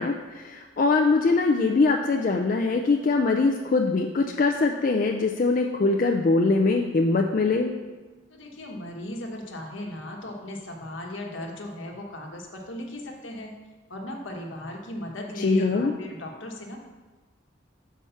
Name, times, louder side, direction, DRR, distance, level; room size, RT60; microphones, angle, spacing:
voice 1, 0.0-7.7 15.4-15.9, left 3 dB, 45° left, 2 dB, 0.4 m, -22 dB
voice 2, 8.3-13.5 13.9-16.8, left 1 dB, 75° left, 1 dB, 1.1 m, -37 dB
5.7 x 4.7 x 5.5 m, 1.3 s
head